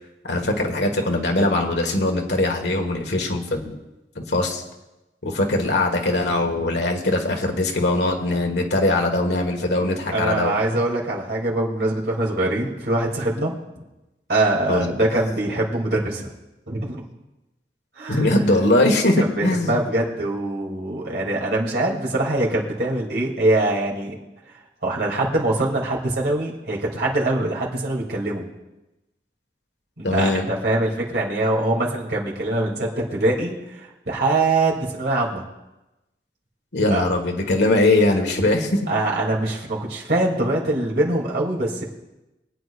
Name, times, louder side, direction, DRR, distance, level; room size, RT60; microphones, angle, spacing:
voice 1, 0.2-3.8 4.1-4.6 5.2-10.5 14.7-14.9 18.1-19.8 30.0-30.5 36.7-38.8, left 2 dB, 80° left, 3 dB, 1.7 m, -21 dB
voice 2, 10.1-13.5 14.3-16.3 16.7-17.0 18.0-18.6 19.2-24.1 24.8-28.5 30.0-35.4 36.9-37.0 38.9-41.8, right 2 dB, 70° right, -3 dB, 2.9 m, -23 dB
24.0 x 9.4 x 2.5 m, 1.0 s
head